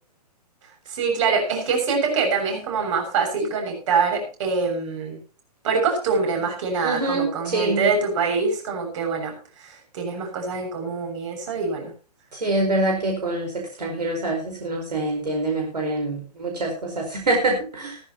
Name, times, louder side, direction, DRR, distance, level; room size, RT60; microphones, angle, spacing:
voice 1, 0.9-5.2 5.6-11.9, right 4 dB, 50° right, 3 dB, 7.0 m, -24 dB
voice 2, 6.8-7.9 12.3-18.0, right 2 dB, 75° right, 2 dB, 4.9 m, -25 dB
16.0 x 14.5 x 3.1 m, 0.35 s
figure-of-eight pair, 125°, 21 cm